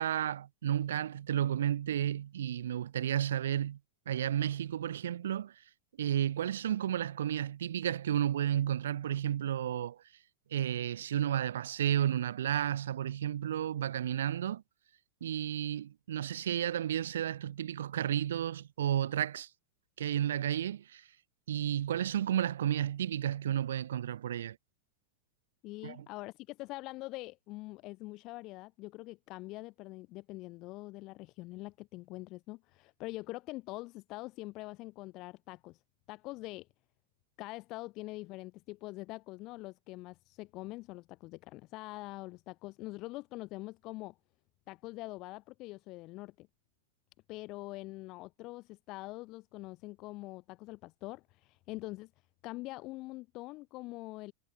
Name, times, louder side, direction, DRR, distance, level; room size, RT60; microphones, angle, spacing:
voice 1, 0.0-3.8 4.1-5.5 6.0-10.0 10.5-14.6 15.2-19.5 20.0-21.0 21.5-24.6 25.8-26.1, right 10 dB, 60° right, 1.4 m, -32 dB
voice 2, 25.6-35.8 36.1-36.7 37.4-44.2 44.7-46.5 47.3-52.1 52.4-54.3, left 20 dB, 40° left, 3.1 m, -44 dB
figure-of-eight pair, 90°, 0 cm